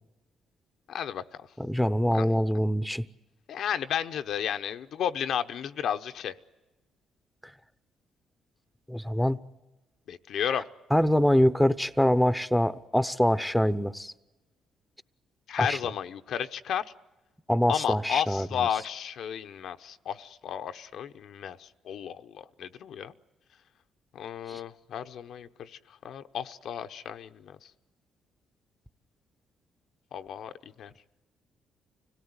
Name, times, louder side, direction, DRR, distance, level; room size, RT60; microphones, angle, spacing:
voice 1, 0.9-1.2 2.1-2.3 3.5-6.3 10.1-10.6 15.5-16.9 17.7-23.1 24.1-25.8 26.0-27.6 30.1-30.5 30.8-30.9, left 9 dB, 70° left, 0.8 m, -33 dB
voice 2, 1.6-3.0 8.9-9.4 10.9-14.1 15.6-15.8 17.5-18.7 24.5-24.6, equal, 5° left, 0.8 m, -24 dB
25.5 x 18.0 x 9.7 m
cardioid pair, 90°, 0 cm